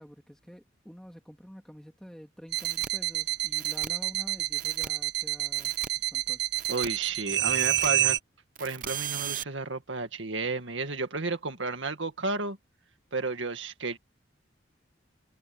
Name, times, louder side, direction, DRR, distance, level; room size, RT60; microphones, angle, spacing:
voice 1, 0.0-6.4, equal, 5° left, 2.3 m, -48 dB
sound 1, 2.5-8.2, right 14 dB, 65° right, 1.2 m, -28 dB
sound 2, 2.6-2.9 3.6-3.9 4.6-4.9 5.6-5.9 6.6-6.9 7.6-7.9 8.6-9.4, right 9 dB, 45° right, 0.7 m, -37 dB
voice 2, 6.7-8.2 8.6-12.6 13.1-14.0, right 3 dB, 80° right, 2.0 m, -32 dB
head